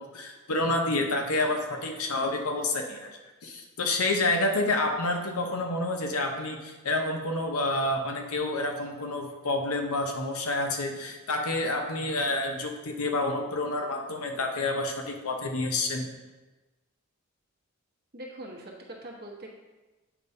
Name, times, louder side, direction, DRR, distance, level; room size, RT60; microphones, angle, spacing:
voice 1, 0.0-3.1 3.4-16.1, left 2 dB, 85° left, 3 dB, 0.9 m, -29 dB
voice 2, 18.1-19.5, right 1 dB, 45° right, -1 dB, 1.1 m, -42 dB
8.3 x 5.4 x 2.7 m, 1.2 s
head